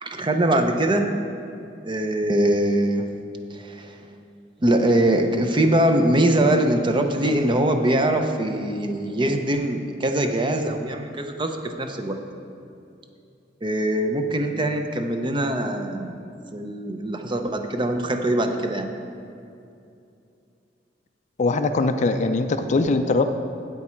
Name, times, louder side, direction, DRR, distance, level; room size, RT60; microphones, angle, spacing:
voice 1, 0.0-1.1 1.8-3.0 3.5-4.0 4.6-12.2 13.6-16.2 16.5-18.9, right 1 dB, 25° right, 5 dB, 0.6 m, -22 dB
voice 2, 21.4-23.2, left 3 dB, 40° left, 8 dB, 0.4 m, -21 dB
8.5 x 8.3 x 4.4 m, 2.6 s
head